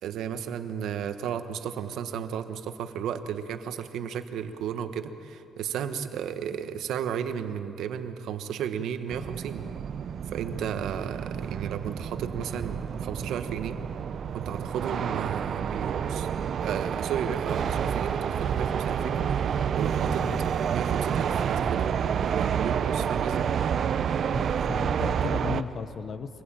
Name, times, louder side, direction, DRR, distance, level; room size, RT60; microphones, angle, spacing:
voice 1, 0.0-9.7 10.3-13.8 14.3-16.3 16.6-19.3 19.8-20.3 20.7-23.5, right 8 dB, 90° right, 8 dB, 1.3 m, -33 dB
sound 1, 9.1-25.6, right 8 dB, 55° right, 0.7 m, -29 dB
voice 2, 20.0-20.5 24.3-26.4, left 6 dB, 45° left, 12 dB, 1.0 m, -36 dB
24.5 x 20.5 x 8.9 m, 2.7 s
cardioid pair, 145°, 0 cm